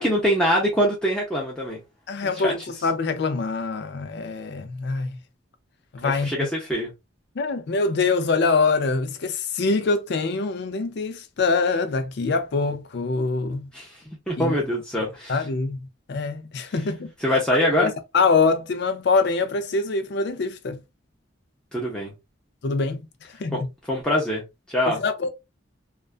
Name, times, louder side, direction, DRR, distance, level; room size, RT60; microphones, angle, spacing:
voice 1, 0.0-1.8 2.2-2.5 6.0-6.9 13.7-13.9 14.3-15.4 17.2-17.9 21.7-22.1 23.5-23.6 23.9-24.4 24.7-25.0, equal, 5° left, 0.6 m, -23 dB
voice 2, 2.1-5.2 5.9-6.5 7.4-13.7 14.4-14.6 15.3-15.8 16.1-17.1 17.8-20.8 22.6-23.0 23.4-23.7 24.9-25.3, left 4 dB, 60° left, 0.4 m, -24 dB
2.4 x 2.2 x 2.4 m
head